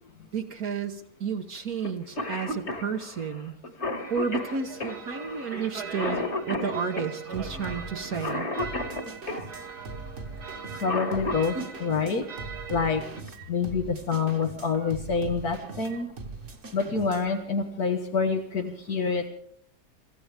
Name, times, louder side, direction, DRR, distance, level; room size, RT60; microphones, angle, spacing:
voice 1, 0.3-3.5 4.1-8.5, right 6 dB, 65° right, 3 dB, 1.7 m, -32 dB
Cough, 1.8-1.9 2.2-9.5 10.6-11.7 13.3-13.4 14.4-14.7 15.2-15.3 15.6-16.1, left 2 dB, 45° left, 2.4 m, -33 dB
sound 1, 4.0-13.2, right 5 dB, 80° right, 4.2 m, -41 dB
sound 2, 7.3-17.4, right 3 dB, 50° right, 1.9 m, -41 dB
voice 2, 10.8-12.2 12.7-13.0 13.5-16.1 16.7-19.3, left 5 dB, 70° left, 1 dB, 2.0 m, -27 dB
28.5 x 15.0 x 3.4 m, 0.65 s
omnidirectional pair, 1.7 m